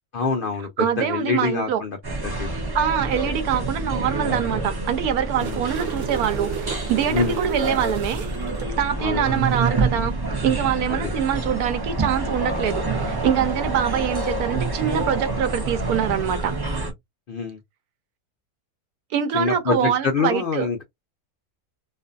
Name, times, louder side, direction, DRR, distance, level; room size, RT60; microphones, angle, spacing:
voice 1, 0.1-2.0 2.2-2.5 5.4-5.6 7.1-7.4 9.0-9.4 10.9-11.1 17.3-17.6 19.3-20.8, left 4 dB, 75° left, 0.4 m, -25 dB
voice 2, 0.8-1.8 2.7-8.2 8.8-10.1 10.4-16.5 19.1-20.7, right 9 dB, 85° right, 1.1 m, -24 dB
sound 1, 2.0-16.9, right 2 dB, 30° right, 0.4 m, -27 dB
sound 2, 5.1-8.7 12.5-12.7, right 8 dB, 60° right, 1.0 m, -32 dB
2.5 x 2.4 x 2.4 m
omnidirectional pair, 1.6 m